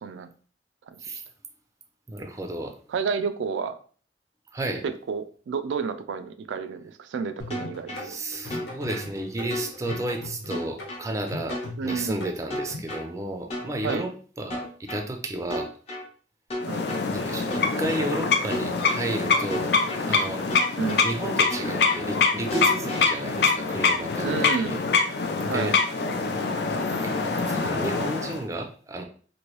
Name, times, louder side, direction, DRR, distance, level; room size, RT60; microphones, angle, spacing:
voice 1, 2.1-2.8 4.5-4.8 7.9-14.1 14.4-15.7 17.1-19.7 20.0-20.4 21.0-24.8 25.4-25.7 27.0-29.0, right 1 dB, 15° right, 4 dB, 0.4 m, -32 dB
voice 2, 2.9-3.7 4.8-8.2 11.8-12.3 13.8-14.1 16.7-16.9 20.8-21.1 24.2-24.8 25.5-25.9, right 5 dB, 90° right, 9 dB, 0.3 m, -30 dB
sound 1, 7.4-13.0, left 1 dB, 80° left, 1.2 m, -39 dB
sound 2, 7.5-8.0 8.5-9.0 9.5-10.0 10.5-11.0 11.5-12.0 12.5-13.0 13.5-14.0 14.5-15.0 15.5-16.0 16.5-17.0 17.5-18.0 18.5-19.0 19.5-20.0 20.5-21.0 21.5-22.0 22.5-23.0, left 1 dB, 35° left, 0.7 m, -33 dB
sound 3, 16.6-28.4, left 4 dB, 60° left, 0.4 m, -25 dB
3.0 x 2.6 x 3.0 m, 0.42 s
head